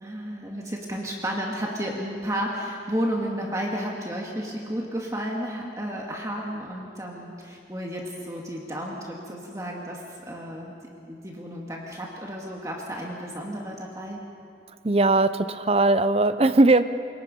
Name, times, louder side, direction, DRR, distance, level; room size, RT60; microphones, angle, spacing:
voice 1, 0.0-10.0 10.3-10.7 11.1-14.2, equal, 20° right, -1 dB, 2.1 m, -32 dB
voice 2, 14.8-16.8, right 2 dB, 35° right, 12 dB, 0.6 m, -19 dB
27.5 x 22.0 x 5.5 m, 2.5 s
head